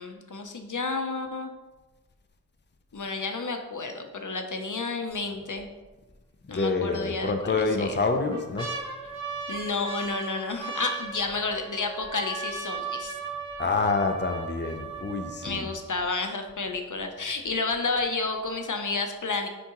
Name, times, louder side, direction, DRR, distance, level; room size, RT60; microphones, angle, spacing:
voice 1, 0.0-1.5 2.9-5.7 6.5-8.0 9.5-13.1 15.4-19.5, left 3 dB, 70° left, 4 dB, 0.7 m, -31 dB
sound 1, 5.1-5.6 6.1-6.2 7.1-7.6 8.0-16.0 16.7-16.8 17.0-17.5 18.0-18.1, right 4 dB, 15° left, 2.1 m, -37 dB
voice 2, 6.5-8.7 13.6-15.7, left 3 dB, 35° left, 5 dB, 0.6 m, -27 dB
9.9 x 3.7 x 3.0 m, 1.2 s
wide cardioid pair, 45°, 32 cm